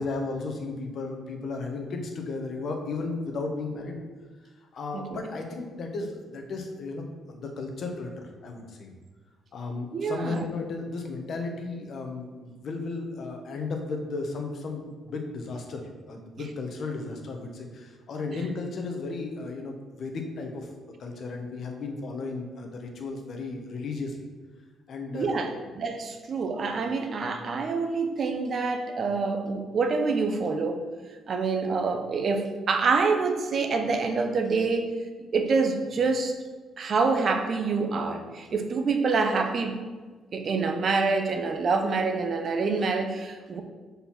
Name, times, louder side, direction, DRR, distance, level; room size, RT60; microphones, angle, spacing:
voice 1, 0.0-4.0 4.6-8.9 9.5-20.7 21.0-24.2 24.9-25.5, left 3 dB, 60° left, 3 dB, 1.2 m, -34 dB
voice 2, 9.9-10.4 25.1-25.5 25.8-30.8 31.3-35.0 35.3-36.4 36.8-39.8 40.3-43.6, right 4 dB, 50° right, 6 dB, 0.8 m, -26 dB
5.4 x 4.4 x 5.8 m, 1.4 s
cardioid pair, 90°, 0 cm